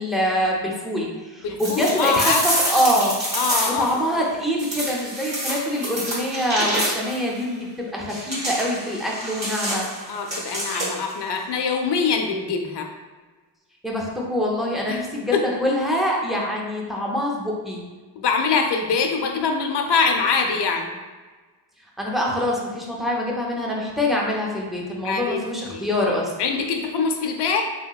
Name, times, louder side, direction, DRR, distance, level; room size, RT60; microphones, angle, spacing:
voice 1, 0.0-2.3 2.7-3.2 3.7-9.9 13.8-15.3 15.6-17.8 22.0-26.3, equal, ahead, -3 dB, 0.4 m, -25 dB
voice 2, 1.4-2.4 3.3-4.2 10.1-12.9 14.9-15.0 15.3-15.6 18.2-20.9 25.0-25.4 25.7-25.9 26.4-27.6, left 5 dB, 75° left, 3 dB, 0.5 m, -23 dB
sound 1, 1.6-4.0 4.6-7.2 8.1-11.1, right 1 dB, 40° right, 1.1 m, -27 dB
3.2 x 2.8 x 2.3 m, 1.4 s
wide cardioid pair, 140°, 42 cm